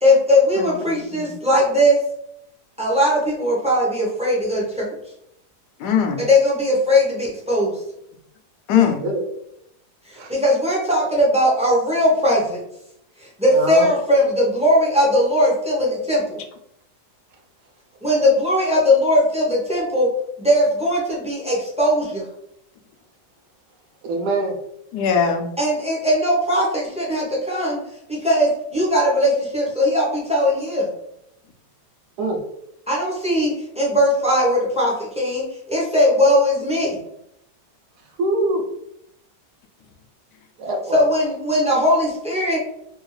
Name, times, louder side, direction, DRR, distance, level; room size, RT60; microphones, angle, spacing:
voice 1, 0.0-2.0 2.8-4.9 6.2-7.8 10.3-12.6 13.2-16.4 18.0-20.1 20.4-22.2 25.6-27.8 28.1-30.9 32.9-37.0 40.9-42.6, left 1 dB, 10° right, -5 dB, 0.4 m, -19 dB
voice 2, 0.6-1.2 5.8-6.2 8.7-9.0 24.9-25.5, left 7 dB, 80° left, 4 dB, 1.2 m, -21 dB
voice 3, 13.5-13.9 24.0-24.5 32.2-32.4 38.2-38.6 40.6-41.0, right 2 dB, 80° right, 2 dB, 1.2 m, -23 dB
3.4 x 2.4 x 3.1 m, 0.77 s
omnidirectional pair, 1.7 m